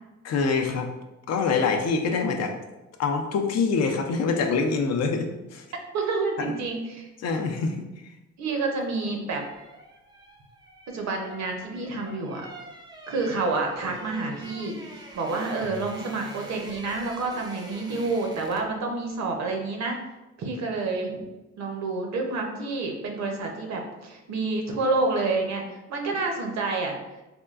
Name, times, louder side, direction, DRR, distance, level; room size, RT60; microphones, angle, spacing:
voice 1, 0.2-0.9 1.3-2.5 3.0-5.7 7.2-8.1, left 4 dB, 55° left, 5 dB, 0.5 m, -25 dB
voice 2, 5.9-7.1 8.4-9.4 10.9-12.5 13.1-20.0 20.4-21.2 21.6-26.9, right 3 dB, 65° right, 2 dB, 0.7 m, -28 dB
sound 1, 8.8-18.8 19.1-19.3, right 2 dB, 15° right, 0.5 m, -46 dB
3.5 x 2.2 x 2.4 m, 1.0 s
cardioid pair, 90°, 30 cm